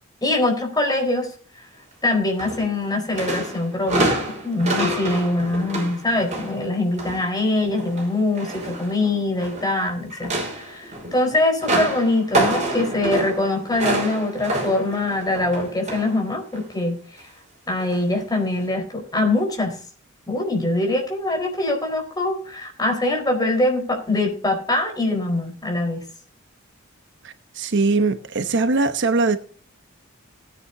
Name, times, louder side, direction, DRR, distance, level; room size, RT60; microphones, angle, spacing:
voice 1, 0.2-1.3 2.0-17.3 17.7-19.8 20.3-26.0, left 2 dB, 20° left, 4.5 m, -23 dB
sound 1, 2.4-2.9 3.1-7.3 7.6-9.7 10.1-16.2 16.5-16.8 17.8-18.0 18.6-18.7, right 1 dB, 35° right, 5.6 m, -27 dB
voice 2, 27.2-29.4, right 3 dB, 60° right, 1.0 m, -21 dB
18.5 x 9.6 x 2.8 m
head